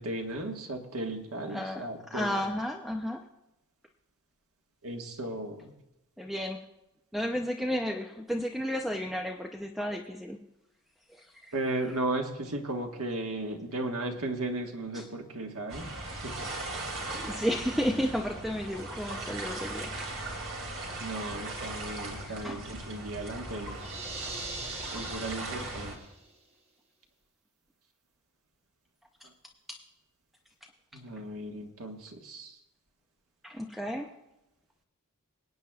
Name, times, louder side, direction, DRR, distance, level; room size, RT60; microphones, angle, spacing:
voice 1, 0.0-2.3 4.8-5.6 11.5-15.9 16.2-16.5 21.0-23.8 24.9-26.0 30.9-32.6, right 2 dB, 85° right, 2 dB, 1.5 m, -35 dB
voice 2, 1.5-3.2 6.2-6.6 7.1-10.4 11.1-11.5 14.9-15.1 17.3-20.0 21.8-22.7 29.7-29.8 33.4-34.1, equal, ahead, 3 dB, 0.5 m, -33 dB
sound 1, 15.7-26.0, right 2 dB, 65° right, 2.5 m, -38 dB
sound 2, 23.7-26.2, right 3 dB, 30° right, 1.1 m, -40 dB
26.0 x 8.9 x 2.4 m, 0.93 s
head